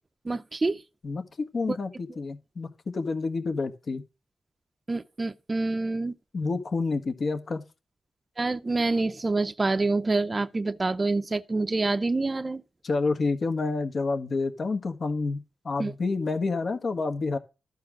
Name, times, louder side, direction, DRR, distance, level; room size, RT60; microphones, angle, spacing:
voice 1, 0.2-0.8 1.7-1.8 4.9-6.1 8.4-12.6 15.8-15.9, right 3 dB, 25° right, 0.6 m, -27 dB
voice 2, 1.5-4.0 6.3-7.7 12.8-17.4, left 3 dB, 50° left, 1.6 m, -29 dB
13.0 x 4.6 x 7.4 m
wide cardioid pair, 115°, 0 cm